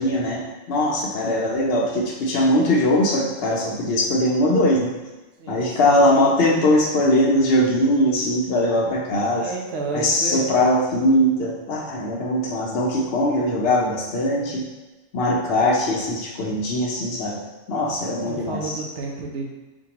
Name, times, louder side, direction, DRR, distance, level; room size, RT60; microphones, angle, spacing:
voice 1, 0.0-4.9 5.5-9.5 9.9-14.6 15.1-17.4 17.7-18.8, left 1 dB, 60° left, -4 dB, 0.7 m, -21 dB
voice 2, 5.4-6.0 9.4-10.4 12.9-13.1 17.9-18.0 18.3-19.5, right 3 dB, 65° right, 0 dB, 0.8 m, -31 dB
4.5 x 2.3 x 2.8 m, 1.1 s
omnidirectional pair, 1.3 m